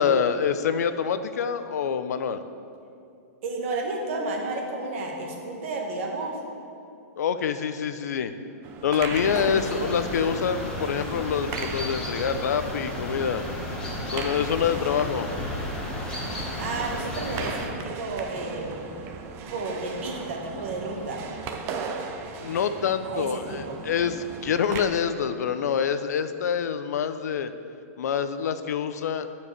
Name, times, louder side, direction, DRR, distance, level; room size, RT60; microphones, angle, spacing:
voice 1, 0.0-2.4 7.2-8.3 8.8-13.5 14.1-15.3 22.4-27.5 28.0-29.3, left 7 dB, 85° left, 11 dB, 0.6 m, -26 dB
voice 2, 3.4-6.4 9.3-10.0 16.6-18.8 19.4-21.2 23.0-23.8, right 3 dB, 50° right, 1 dB, 1.5 m, -32 dB
sound 1, 8.6-24.8, right 5 dB, 25° right, 0.6 m, -38 dB
sound 2, 9.1-17.7, left 1 dB, 10° left, 1.2 m, -33 dB
10.0 x 4.7 x 6.5 m, 2.6 s
supercardioid pair, 165°, 9 cm